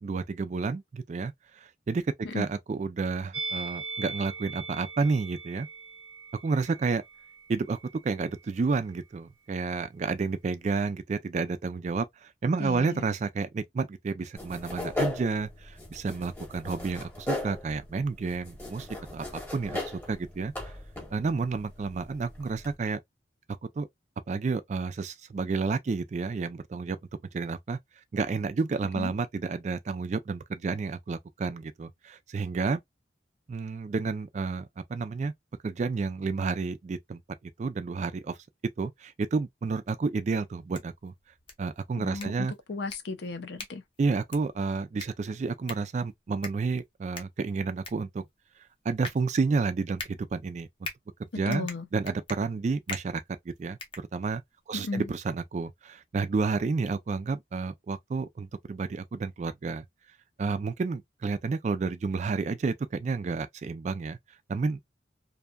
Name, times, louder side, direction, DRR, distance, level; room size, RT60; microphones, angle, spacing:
voice 1, 0.0-1.3 1.6-5.7 6.4-7.0 7.5-20.5 21.1-23.0 23.8-23.9 24.3-27.0 27.3-27.8 28.1-32.8 33.5-35.3 35.6-37.2 37.6-38.4 38.8-41.1 41.6-42.5 44.0-48.2 48.8-50.7 51.4-54.4 54.7-59.8 60.4-64.2 64.5-64.9, right 4 dB, 40° right, 0.3 m, -30 dB
Musical instrument, 3.3-8.6 8.8-9.0, right 3 dB, 90° right, 0.7 m, -40 dB
voice 2, 12.6-13.0 29.0-29.1 42.0-43.8 51.5-51.9 54.7-55.1, left 3 dB, 70° left, 0.5 m, -35 dB
sound 1, 14.4-22.8, left 2 dB, 10° left, 0.9 m, -38 dB
sound 2, 40.5-54.6, left 3 dB, 30° left, 0.6 m, -45 dB
2.6 x 2.2 x 2.3 m
head